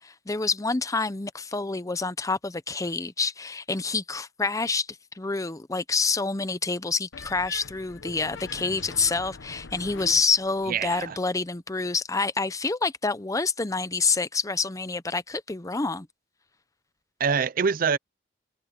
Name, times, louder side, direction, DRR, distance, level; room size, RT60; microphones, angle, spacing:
voice 1, 0.0-4.9 5.2-16.1, left 4 dB, 20° left, 0.7 m, -27 dB
sound 1, 7.1-11.1, left 4 dB, 85° left, 1.0 m, -43 dB
voice 2, 10.7-11.2 17.2-18.0, right 6 dB, 50° right, 0.5 m, -25 dB
head